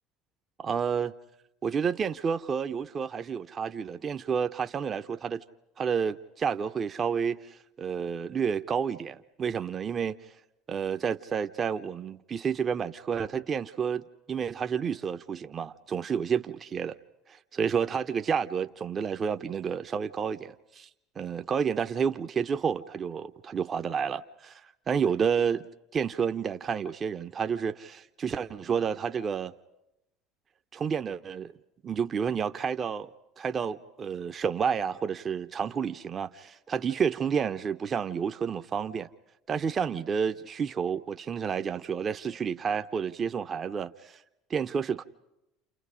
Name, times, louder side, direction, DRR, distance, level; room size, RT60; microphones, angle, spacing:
voice 1, 0.6-1.1 1.6-5.4 5.8-10.2 10.7-17.0 17.3-20.9 21.2-24.6 24.9-25.7 25.9-29.5 30.7-31.5 31.8-33.1 33.4-39.1 39.5-44.2 44.5-45.0, right 6 dB, 35° right, 1.0 m, -30 dB
30.0 x 29.5 x 5.1 m
figure-of-eight pair, 65°, 0 cm